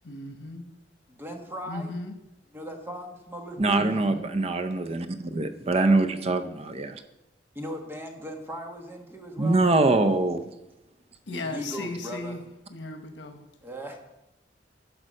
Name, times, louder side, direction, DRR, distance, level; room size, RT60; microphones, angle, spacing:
voice 1, 0.0-0.6 1.7-2.1 3.9-4.3 11.3-12.4 12.7-13.4, left 2 dB, 85° left, 7 dB, 1.1 m, -36 dB
voice 2, 1.1-1.9 2.5-4.0 5.7-6.0 7.5-9.6 11.3-12.4 13.6-14.0, equal, 15° right, 2 dB, 1.4 m, -38 dB
voice 3, 3.6-7.0 9.4-10.4, right 2 dB, 35° right, 9 dB, 0.6 m, -24 dB
10.5 x 5.1 x 6.3 m, 0.92 s
head